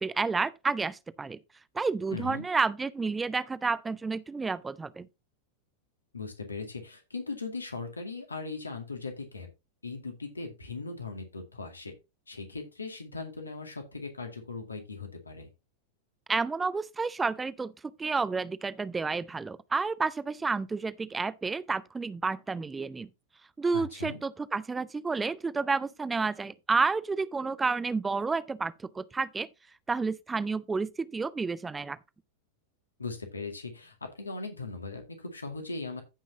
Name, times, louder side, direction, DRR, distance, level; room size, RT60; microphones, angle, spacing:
voice 1, 0.0-1.4 1.7-5.1 16.3-17.7 18.0-23.1 23.6-29.5 29.9-32.0, right 4 dB, 15° right, 0.6 m, -30 dB
voice 2, 2.1-2.4 6.1-9.5 9.8-11.9 12.3-15.5 23.7-24.2 33.0-36.0, left 3 dB, 80° left, 2.1 m, -39 dB
15.0 x 5.6 x 2.8 m
figure-of-eight pair, 90°, 0 cm